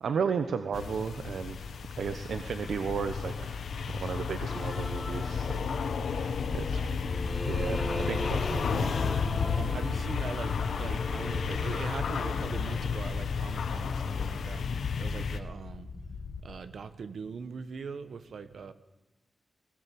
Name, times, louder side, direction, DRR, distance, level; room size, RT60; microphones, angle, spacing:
voice 1, 0.0-3.6 3.9-5.7 6.5-7.0 7.4-7.8 8.1-8.9, right 6 dB, 90° right, 9 dB, 1.1 m, -34 dB
sound 1, 0.7-15.4, left 6 dB, 85° left, 1.4 m, -32 dB
sound 2, 4.4-6.2 6.9-13.0, left 1 dB, 15° left, 1.3 m, -40 dB
voice 2, 5.7-6.4 6.6-6.9 7.6-8.3 9.5-15.9 16.4-18.7, right 5 dB, 65° right, 11 dB, 1.2 m, -41 dB
sound 3, 6.3-16.6, left 4 dB, 60° left, 1.9 m, -39 dB
20.5 x 18.5 x 8.6 m, 1.1 s
wide cardioid pair, 165°, 0 cm